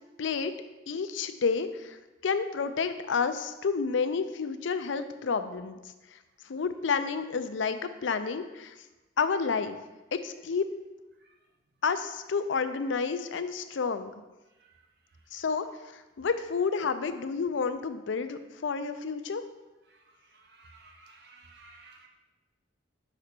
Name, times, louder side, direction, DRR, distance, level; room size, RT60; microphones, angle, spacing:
voice 1, 0.2-0.5 0.9-2.0 2.2-5.8 6.5-8.7 9.2-9.8 10.1-10.7 11.8-14.1 15.3-19.4, left 5 dB, 75° left, 10 dB, 0.5 m, -30 dB
voice 2, 20.3-22.1, right 3 dB, 55° right, 3 dB, 0.9 m, -54 dB
6.6 x 5.0 x 4.4 m, 1.1 s
head